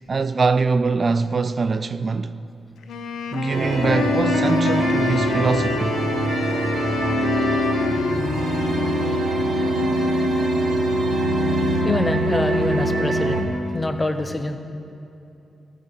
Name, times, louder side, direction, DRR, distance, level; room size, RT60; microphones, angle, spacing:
voice 1, 0.1-2.3 3.3-6.0, right 4 dB, 45° right, 0.4 m, -22 dB
Wind instrument woodwind instrument, 2.8-10.7, left 6 dB, 90° left, 0.9 m, -29 dB
sound 1, 3.5-13.4, right 1 dB, 80° right, 2.6 m, -22 dB
voice 2, 11.8-14.6, left 2 dB, 20° left, 1.1 m, -25 dB
14.0 x 8.5 x 7.5 m
cardioid pair, 80°, 0 cm